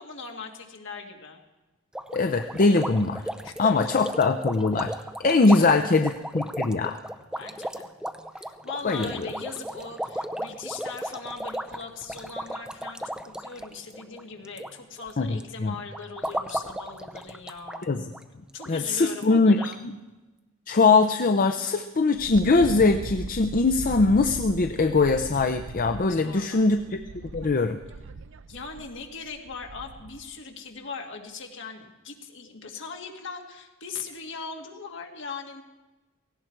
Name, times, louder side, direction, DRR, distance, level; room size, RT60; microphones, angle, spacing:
voice 1, 0.0-1.4 3.4-3.9 5.5-5.8 7.4-7.9 8.3-17.9 18.5-19.8 26.1-26.7 28.5-35.6, left 4 dB, 60° left, 3 dB, 1.9 m, -40 dB
sound 1, 1.9-14.7 15.0-15.4 15.9-17.8 18.1-18.2 18.6-18.7 19.2-19.3 19.6-19.7, right 1 dB, 5° right, 0.6 m, -35 dB
voice 2, 2.1-3.2 3.6-4.9 5.2-7.0 8.8-9.3 15.2-15.7 17.8-18.0 18.7-19.7 20.7-27.0 27.3-27.8, left 3 dB, 40° left, 7 dB, 0.5 m, -22 dB
Wind, 22.1-30.3, right 3 dB, 65° right, 0.5 m, -39 dB
17.5 x 16.5 x 4.5 m, 1.1 s
head